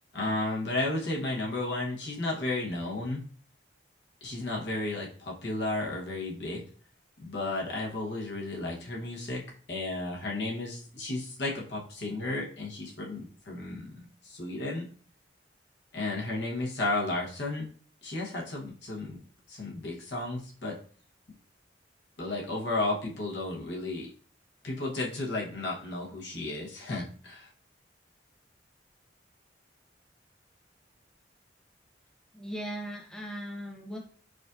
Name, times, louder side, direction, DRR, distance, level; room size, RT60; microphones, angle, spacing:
voice 1, 0.1-3.2 4.2-6.6 7.2-9.4 9.7-14.9 15.9-17.7 18.0-19.2 19.5-20.8 22.2-24.1 24.6-27.5, left 2 dB, 70° left, -2 dB, 1.0 m, -33 dB
voice 2, 32.3-34.0, equal, 5° left, 0 dB, 0.5 m, -38 dB
4.9 x 2.5 x 2.5 m, 0.44 s
head